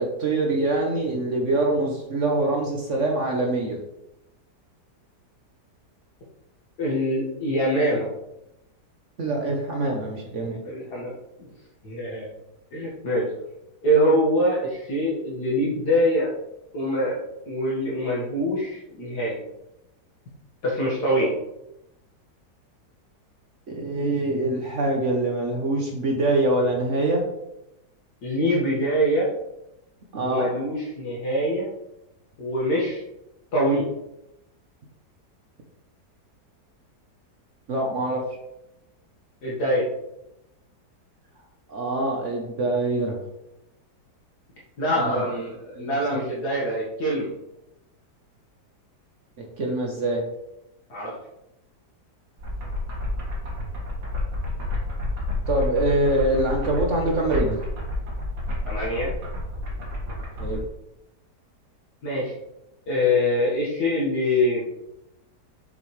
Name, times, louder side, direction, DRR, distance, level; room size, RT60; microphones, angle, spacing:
voice 1, 0.0-3.8 9.2-10.6 21.2-21.3 23.7-27.2 30.1-30.5 37.7-38.2 41.7-43.2 45.0-45.3 45.8-46.2 49.6-50.2 55.5-57.6 60.4-60.6, right 2 dB, 50° right, 1 dB, 1.2 m, -24 dB
voice 2, 6.8-8.1 10.6-11.1 11.4-11.5 11.8-12.3 12.7-13.3 13.8-16.3 16.7-17.2 17.5-19.4 20.6-21.3 28.2-29.3 30.2-31.7 32.4-33.0 33.5-33.8 39.4-39.9 44.8-47.3 50.9-51.1 58.6-59.1 62.0-62.3 62.9-64.6, equal, 70° left, -6 dB, 2.2 m, -24 dB
sound 1, 52.4-60.6, left 2 dB, 75° right, 2.5 m, -30 dB
7.1 x 6.3 x 3.2 m, 0.87 s
omnidirectional pair, 1.8 m